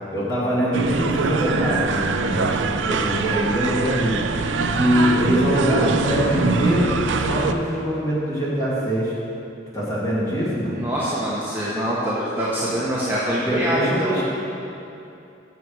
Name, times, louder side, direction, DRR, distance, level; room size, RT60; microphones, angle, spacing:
voice 1, 0.1-4.2 4.7-9.1 9.7-10.7 13.4-14.2, equal, 15° left, -8 dB, 2.1 m, -23 dB
sound 1, 0.7-7.5, right 3 dB, 85° right, 0.5 m, -23 dB
voice 2, 10.7-14.2, right 1 dB, 10° right, -9 dB, 1.0 m, -24 dB
7.9 x 6.8 x 6.3 m, 2.7 s
head